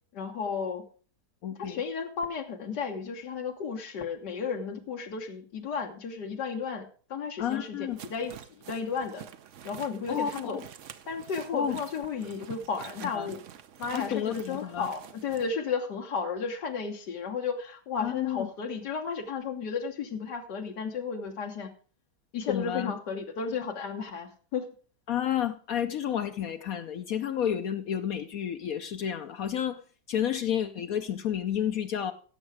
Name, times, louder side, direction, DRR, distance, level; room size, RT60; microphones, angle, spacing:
voice 1, 0.1-0.8 1.6-9.2 9.7-10.6 11.1-13.4 13.8-21.7 22.3-24.7, left 5 dB, 85° left, 1.9 m, -33 dB
voice 2, 1.4-1.8 7.4-8.0 10.1-10.6 11.5-11.8 13.0-13.3 13.9-14.9 18.0-18.5 22.5-23.0 25.1-29.8 30.1-32.1, left 9 dB, 65° left, 1.0 m, -31 dB
sound 1, 7.9-15.5, right 9 dB, 60° right, 0.9 m, -47 dB
16.0 x 6.8 x 4.8 m
omnidirectional pair, 1.8 m